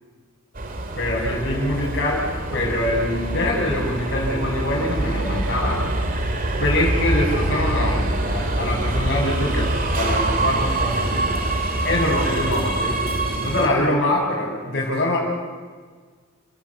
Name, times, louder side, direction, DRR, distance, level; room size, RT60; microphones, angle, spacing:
Subway metro underground, 0.6-13.7, right 2 dB, 45° right, 2.4 m, -24 dB
voice 1, 1.0-5.8 6.6-11.3 11.8-13.0 13.4-15.2, left 1 dB, 55° left, -8 dB, 5.8 m, -24 dB
30.0 x 18.0 x 7.1 m, 1.5 s
head